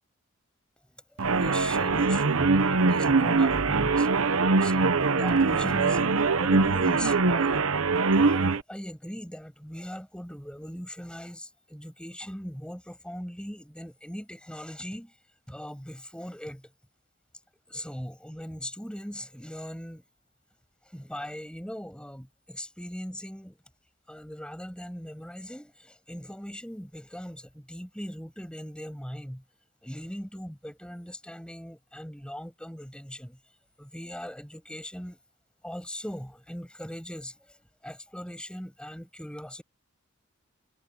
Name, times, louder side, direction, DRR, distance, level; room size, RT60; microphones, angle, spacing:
sound 1, 1.2-8.6, right 4 dB, 75° right, 1.0 m, -23 dB
voice 1, 1.3-4.1 4.6-7.6 8.2-15.1 15.5-16.7 17.7-20.0 20.9-23.6 24.1-29.4 29.8-33.4 33.8-35.2 35.6-37.3 37.8-39.6, equal, 5° left, 6.9 m, -39 dB
head